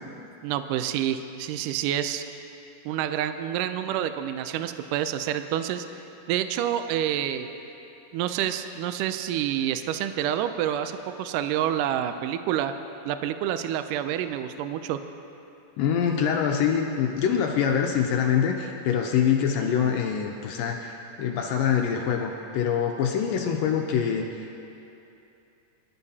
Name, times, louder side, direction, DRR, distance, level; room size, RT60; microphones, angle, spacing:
voice 1, 0.4-2.2 2.9-5.9 6.3-7.5 8.1-12.7 13.1-15.0, right 10 dB, 80° right, 9 dB, 2.0 m, -28 dB
voice 2, 15.8-24.5, left 7 dB, 80° left, 1 dB, 2.3 m, -25 dB
23.0 x 12.5 x 2.8 m, 2.8 s
omnidirectional pair, 4.1 m